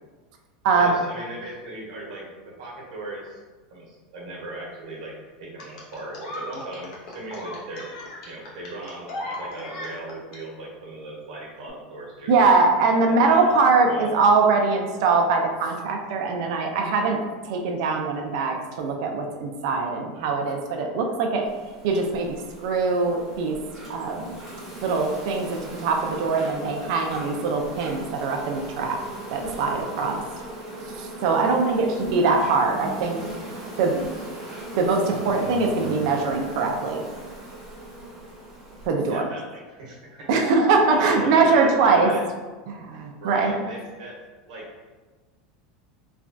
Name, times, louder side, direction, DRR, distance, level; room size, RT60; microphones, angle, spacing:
voice 1, 0.7-2.2 2.6-3.4 3.7-7.9 8.2-12.4 13.1-13.5 13.9-14.1 31.4-31.9 38.9-40.5 40.9-42.2 43.2-44.2 44.5-44.9, right 2 dB, 90° right, -4 dB, 1.0 m, -38 dB
sound 1, 5.6-10.4 11.6-11.7, left 1 dB, 55° left, 0.7 m, -37 dB
voice 2, 12.3-17.2 17.5-21.5 21.8-22.4 22.6-23.6 23.9-24.4 24.8-29.0 29.3-30.2 31.0-33.2 33.8-33.9 34.8-37.0 38.9-39.2 40.3-42.1 42.7-43.5, right 4 dB, 55° right, 2 dB, 0.4 m, -22 dB
Insect, 21.5-38.9, right 1 dB, 5° right, 0.8 m, -38 dB
3.2 x 2.2 x 2.5 m, 1.3 s
supercardioid pair, 175°, 4 cm